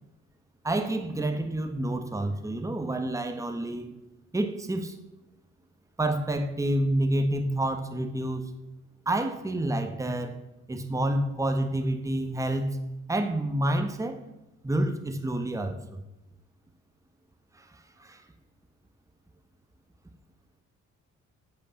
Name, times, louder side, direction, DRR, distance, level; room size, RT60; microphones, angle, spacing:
voice 1, 0.6-3.9 4.3-5.0 6.0-8.5 9.0-10.4 10.7-12.8 13.1-14.2 14.6-16.0 17.5-18.2, right 1 dB, 10° right, 6 dB, 1.3 m, -28 dB
8.5 x 8.4 x 7.1 m, 0.98 s
cardioid pair, 90°, 30 cm